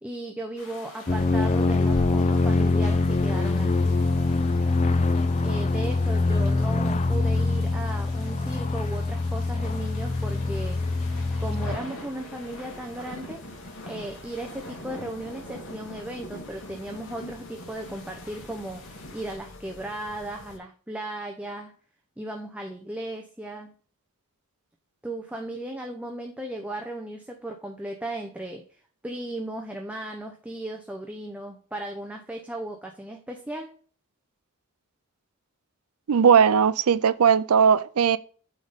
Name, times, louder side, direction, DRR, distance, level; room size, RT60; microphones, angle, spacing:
voice 1, 0.0-4.0 5.4-10.8 11.4-13.5 13.9-18.8 19.1-21.7 22.2-23.8 25.0-33.8, right 1 dB, 5° right, 0.6 m, -36 dB
sound 1, 0.6-19.4, left 1 dB, 80° left, 2.5 m, -45 dB
sound 2, 1.1-11.8, left 3 dB, 30° left, 0.4 m, -24 dB
sound 3, 9.6-20.6, left 2 dB, 55° left, 0.9 m, -47 dB
voice 2, 36.1-38.2, right 7 dB, 85° right, 0.5 m, -18 dB
8.5 x 3.6 x 4.0 m
head